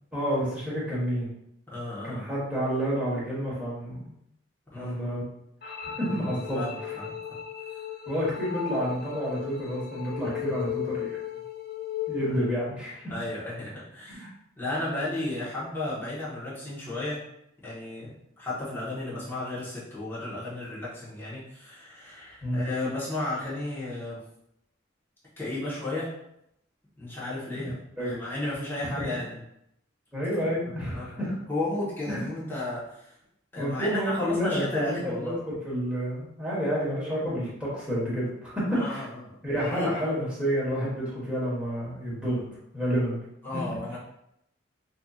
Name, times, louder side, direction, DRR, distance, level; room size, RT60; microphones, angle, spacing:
voice 1, 0.1-1.3 2.0-4.2 4.7-5.2 5.6-7.0 8.1-11.2 12.1-13.1 14.1-14.3 22.4-22.6 27.5-28.2 30.1-31.3 32.1-32.3 33.5-39.0 39.4-42.4 42.7-43.2 43.5-43.6, equal, 5° right, -8 dB, 1.5 m, -29 dB
voice 2, 1.7-2.3 4.7-5.1 6.1-7.4 10.2-10.6 13.1-14.2 14.6-17.2 17.6-24.2 25.4-26.1 27.0-29.4 30.7-33.1 33.5-35.3 38.7-39.2 39.6-39.9 43.4-44.0, left 2 dB, 10° left, -10 dB, 1.2 m, -34 dB
sound 1, 5.6-12.6, left 10 dB, 50° left, 0.4 m, -36 dB
5.5 x 2.8 x 2.4 m, 0.79 s
head